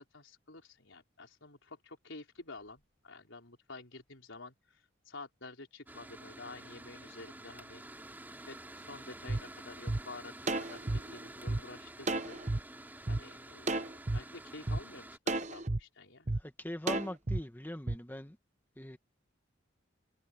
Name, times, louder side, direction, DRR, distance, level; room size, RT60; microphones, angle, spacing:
voice 1, 0.0-7.8 8.5-10.8 11.1-12.4 13.1-16.3, left 3 dB, 75° left, 4.1 m, -50 dB
Mechanical fan, 5.9-15.2, right 1 dB, 10° right, 3.6 m, -50 dB
sound 1, 9.3-9.4 9.9-10.0 10.5-11.6 12.1-12.6 13.1-13.2 13.7-14.2 14.7-14.8 15.3-15.8 16.3-16.4 16.9-17.4 17.9-18.0, right 2 dB, 35° right, 0.9 m, -32 dB
voice 2, 16.4-18.4 18.8-19.0, equal, 10° left, 1.3 m, -41 dB
head